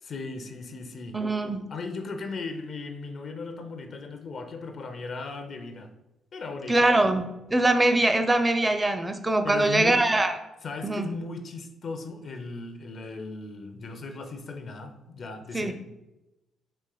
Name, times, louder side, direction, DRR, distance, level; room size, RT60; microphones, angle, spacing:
voice 1, 0.0-1.2 1.7-5.9 6.3-6.9 9.4-10.0 10.6-15.7, left 3 dB, 50° left, 6 dB, 0.5 m, -37 dB
voice 2, 1.1-1.6 6.7-10.4 10.8-11.1 15.5-15.7, right 2 dB, 20° right, 8 dB, 0.5 m, -23 dB
4.2 x 2.9 x 3.8 m, 0.94 s
cardioid pair, 90°, 0 cm